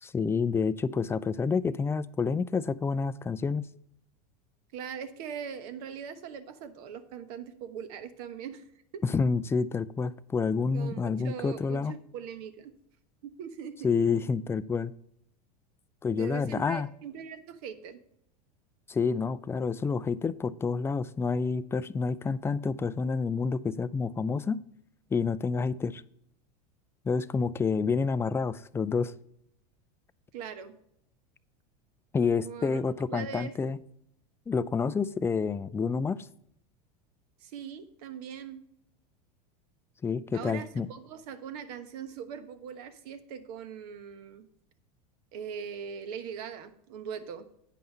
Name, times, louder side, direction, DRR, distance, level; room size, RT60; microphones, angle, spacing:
voice 1, 0.0-3.7 9.0-12.0 13.8-14.9 16.0-16.9 18.9-24.6 25.1-26.0 27.1-29.1 32.1-33.8 34.5-36.3 40.0-40.9, left 5 dB, 10° left, 16 dB, 0.3 m, -28 dB
voice 2, 4.7-8.6 8.9-9.0 10.7-12.7 13.2-13.9 16.2-18.0 30.3-30.8 32.4-32.8 33.1-33.5 37.4-38.6 40.3-44.5 45.3-47.5, right 7 dB, 70° right, 11 dB, 1.1 m, -41 dB
9.2 x 5.5 x 5.5 m, 0.74 s
hypercardioid pair, 105°, 21 cm